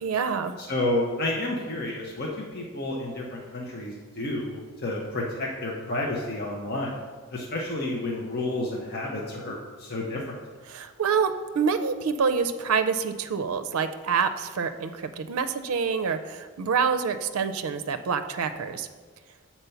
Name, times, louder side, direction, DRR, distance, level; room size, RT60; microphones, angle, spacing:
voice 1, 0.0-0.6 10.7-18.9, right 6 dB, 80° right, 9 dB, 0.4 m, -27 dB
voice 2, 0.6-7.0 7.3-10.4, left 1 dB, 45° left, -2 dB, 0.8 m, -30 dB
6.7 x 4.4 x 5.7 m, 1.4 s
head